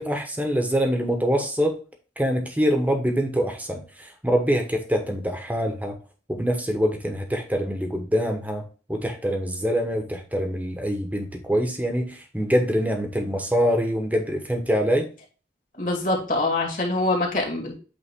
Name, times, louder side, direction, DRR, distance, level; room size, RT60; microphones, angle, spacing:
voice 1, 0.0-1.8 2.2-6.0 6.3-15.1, equal, 10° right, 3 dB, 1.1 m, -24 dB
voice 2, 15.8-17.8, left 2 dB, 50° left, 0 dB, 2.3 m, -24 dB
8.4 x 3.6 x 3.6 m, 0.37 s
head